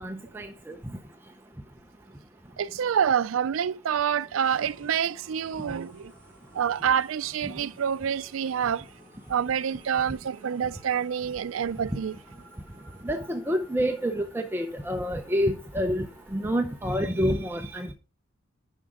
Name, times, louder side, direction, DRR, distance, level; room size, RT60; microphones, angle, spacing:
voice 1, 0.0-0.7 13.0-17.9, equal, 10° right, 0.6 m, -28 dB
voice 2, 2.6-6.1 6.5-8.9 9.3-12.2, right 8 dB, 80° right, 0.4 m, -27 dB
sound 1, 4.4-17.0, equal, 5° left, 2.8 m, -55 dB
10.0 x 5.9 x 3.6 m
head